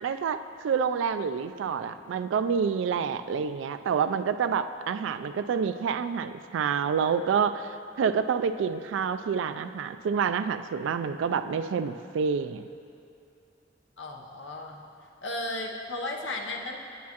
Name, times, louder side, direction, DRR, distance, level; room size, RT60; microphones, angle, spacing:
voice 1, 0.0-12.7, right 6 dB, 80° right, 10 dB, 0.3 m, -28 dB
voice 2, 14.0-14.8 15.2-16.8, left 2 dB, 75° left, 1 dB, 0.8 m, -34 dB
9.3 x 8.3 x 2.9 m, 2.6 s
head